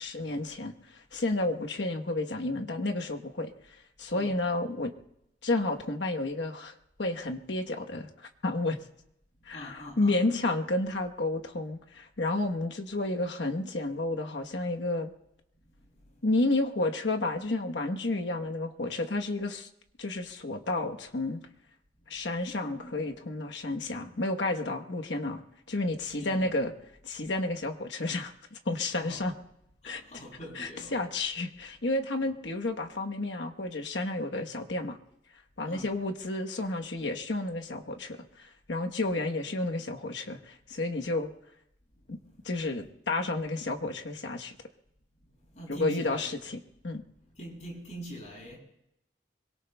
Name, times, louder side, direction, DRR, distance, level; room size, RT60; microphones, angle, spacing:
voice 1, 0.0-3.5 4.0-4.9 5.4-8.1 8.4-8.8 9.5-15.1 16.2-19.7 20.0-21.4 22.1-25.4 25.7-26.7 27.0-29.3 29.8-30.0 30.6-35.0 35.6-41.3 42.1-42.2 42.4-44.5 45.7-46.6 46.8-47.0, left 2 dB, 80° left, 1.1 m, -31 dB
voice 2, 9.5-10.3 22.6-23.0 26.2-26.6 28.8-29.3 29.8-30.9 32.2-32.3 35.6-35.9 45.5-46.3 47.4-48.6, equal, 40° left, 6.8 m, -44 dB
25.5 x 23.0 x 2.3 m
head